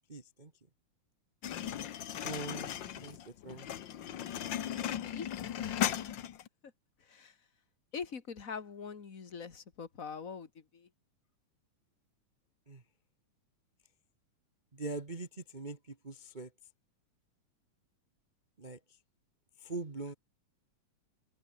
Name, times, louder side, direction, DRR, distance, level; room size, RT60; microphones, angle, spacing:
voice 1, 0.1-0.5 2.2-2.7 2.9-3.7 12.7-12.8 14.7-16.5 18.6-18.8 19.6-20.1, right 3 dB, 70° right, 0.4 m, -42 dB
sound 1, 1.4-6.5, left 10 dB, 65° left, 1.1 m, -37 dB
voice 2, 5.1-6.3 6.6-6.7 7.0-7.4 7.9-10.9, left 6 dB, 30° left, 1.8 m, -44 dB
omnidirectional pair, 3.5 m